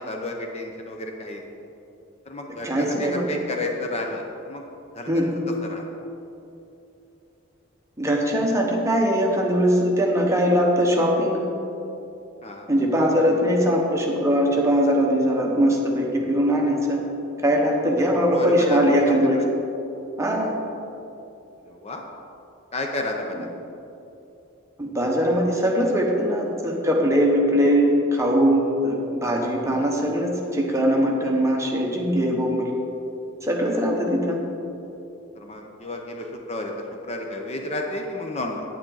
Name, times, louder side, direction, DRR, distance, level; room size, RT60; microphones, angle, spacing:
voice 1, 0.0-1.4 2.3-4.7 4.9-5.3 5.6-5.8 12.4-12.7 18.3-18.8 19.3-19.4 21.7-22.0 22.7-23.4 35.4-36.7 37.0-38.6, left 1 dB, 35° left, 2 dB, 0.7 m, -31 dB
voice 2, 2.6-3.3 5.1-5.4 8.0-11.5 12.7-17.0 17.4-19.4 20.2-20.6 23.3-23.4 24.8-32.7 33.4-34.4, equal, 15° right, -1 dB, 1.1 m, -21 dB
9.0 x 8.9 x 4.0 m, 2.9 s
head